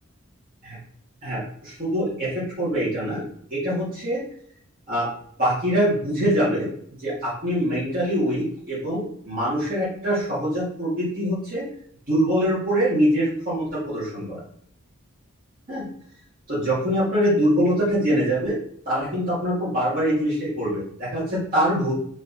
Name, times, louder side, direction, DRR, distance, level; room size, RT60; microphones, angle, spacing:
voice 1, 1.2-3.2 3.5-4.2 4.9-5.1 5.4-6.7 7.0-11.7 12.1-14.4 15.7-15.9 16.5-18.6 18.9-21.9, equal, 45° right, -10 dB, 2.0 m, -24 dB
6.2 x 3.1 x 2.8 m, 0.64 s
head